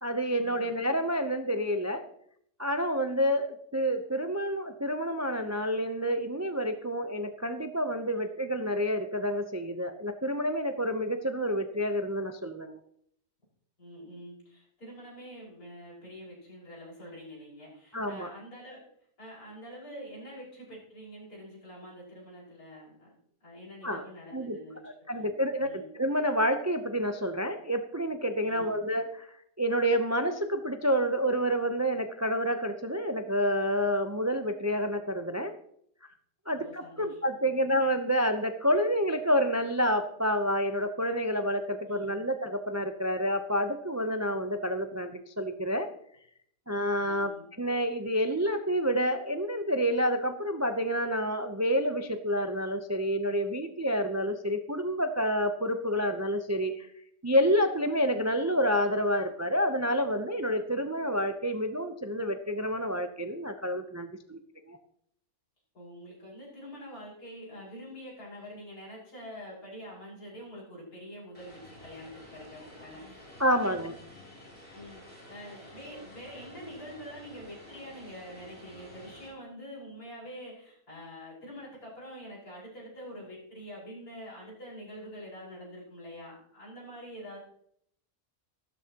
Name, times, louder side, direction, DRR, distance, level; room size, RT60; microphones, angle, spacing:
voice 1, 0.0-2.0 2.6-12.8 17.9-18.3 23.8-24.0 24.3-29.3 29.6-35.5 36.5-45.9 46.7-47.3 47.6-56.9 57.2-64.4 64.7-64.8 73.4-73.9, equal, 25° right, 7 dB, 0.3 m, -29 dB
voice 2, 13.8-18.8 19.2-23.1 23.4-25.8 28.4-28.7 36.5-37.2 37.7-37.8 41.9-42.2 47.0-47.5 65.7-73.8 74.7-87.4, equal, 80° left, -5 dB, 5.8 m, -46 dB
Vehicle, 71.3-79.3, left 1 dB, 40° left, 4.5 m, -51 dB
14.5 x 12.5 x 2.9 m, 0.69 s
omnidirectional pair, 1.5 m